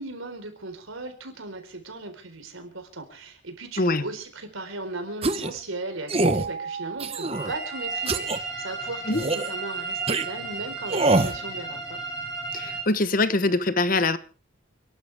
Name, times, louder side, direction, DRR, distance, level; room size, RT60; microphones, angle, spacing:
voice 1, 0.0-12.0, right 2 dB, 90° right, 4.3 m, -37 dB
sound 1, 5.2-5.6 6.1-6.5 7.0-7.5 8.1-8.4 9.1-9.5 10.1-10.3 10.9-11.4, right 2 dB, 30° right, 0.9 m, -24 dB
sound 2, 6.2-9.2, right 6 dB, 50° right, 2.6 m, -38 dB
sound 3, 7.3-12.8, right 4 dB, 20° left, 7.1 m, -34 dB
voice 2, 12.5-14.2, left 2 dB, 40° left, 1.0 m, -23 dB
29.5 x 12.0 x 3.5 m
head